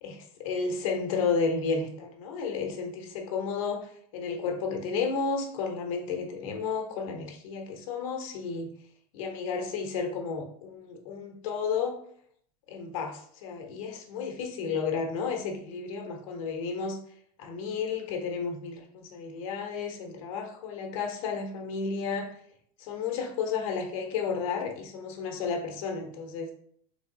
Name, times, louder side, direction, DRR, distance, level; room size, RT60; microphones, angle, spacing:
voice 1, 0.0-8.7 9.1-12.0 12.7-17.0 17.4-22.3 22.8-26.5, left 5 dB, 60° left, 3 dB, 0.9 m, -32 dB
3.4 x 3.0 x 3.8 m, 0.64 s
supercardioid pair, 160°, 19 cm